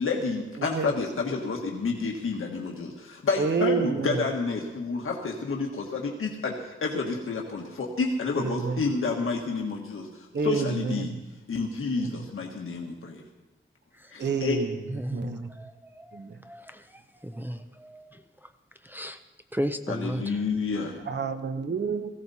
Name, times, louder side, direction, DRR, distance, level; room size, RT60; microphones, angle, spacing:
voice 1, 0.0-10.1 10.4-11.1 11.5-13.2 14.1-14.6 19.9-21.0, left 4 dB, 80° left, 0 dB, 1.6 m, -29 dB
voice 2, 0.6-0.9 3.4-4.2 8.4-8.8 10.3-11.2 12.0-12.3 14.2-15.6 16.1-16.4 21.0-22.1, right 5 dB, 55° right, 8 dB, 1.0 m, -29 dB
voice 3, 14.9-16.8 17.2-18.2 18.8-19.2 19.5-20.4, equal, 10° right, 7 dB, 0.5 m, -35 dB
18.0 x 15.5 x 4.2 m, 1.1 s
wide cardioid pair, 170°, 21 cm